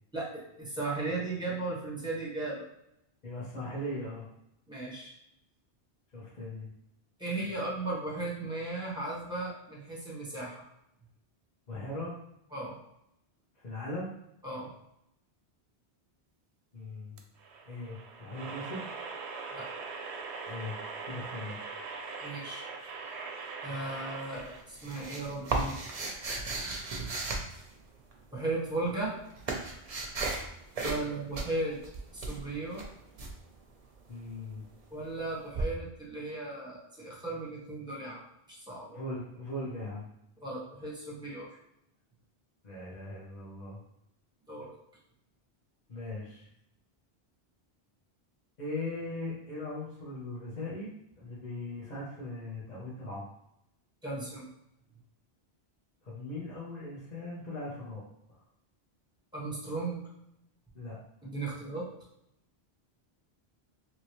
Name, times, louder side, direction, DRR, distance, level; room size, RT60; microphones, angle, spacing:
voice 1, 0.1-2.6 4.7-5.1 7.2-10.6 12.5-12.8 14.4-14.7 19.5-19.7 22.2-22.6 23.6-25.8 28.3-29.1 30.8-31.8 32.1-32.9 34.9-38.2 38.5-39.0 40.4-41.6 44.5-44.7 54.0-54.5 59.3-60.0 61.2-61.9, right 2 dB, 5° right, -5 dB, 1.0 m, -36 dB
voice 2, 3.2-4.2 6.1-6.7 11.7-12.2 13.6-14.2 16.7-17.2 17.6-18.9 20.4-20.8 21.0-21.6 34.1-34.7 38.9-40.1 42.6-43.8 45.9-46.5 48.6-50.9 51.2-53.2 56.0-58.0 60.7-61.0, left 2 dB, 45° left, -7 dB, 0.9 m, -39 dB
sound 1, 17.2-24.6, right 4 dB, 85° right, 0.9 m, -41 dB
sound 2, 24.4-28.2 28.9-30.5 30.7-31.1 31.3-33.3 35.5-35.6, right 3 dB, 45° right, 0.6 m, -35 dB
3.0 x 2.8 x 3.0 m, 0.80 s
omnidirectional pair, 1.1 m